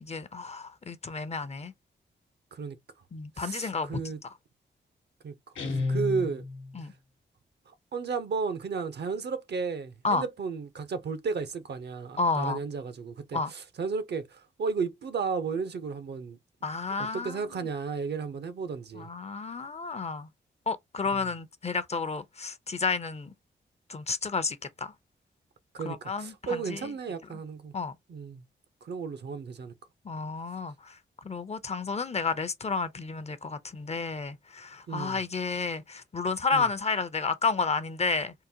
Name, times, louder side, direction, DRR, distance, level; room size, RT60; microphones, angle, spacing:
voice 1, 0.0-1.7 3.1-4.0 6.7-6.9 10.0-10.2 12.2-12.6 13.3-13.5 16.6-17.7 19.0-20.3 20.7-23.3 23.9-24.9 25.8-26.9 27.7-27.9 30.0-30.9 31.2-38.3, left 4 dB, 35° left, 0.5 m, -31 dB
voice 2, 3.4-4.2 5.2-5.3 5.6-6.5 7.7-16.4 17.0-19.1 21.1-21.2 25.7-27.7 28.1-28.4 28.8-29.7 34.9-35.2 36.5-36.7, right 5 dB, 60° right, 0.6 m, -34 dB
Guitar, 5.6-6.8, left 3 dB, 85° left, 1.0 m, -31 dB
3.7 x 2.1 x 2.7 m
cardioid pair, 65°, 19 cm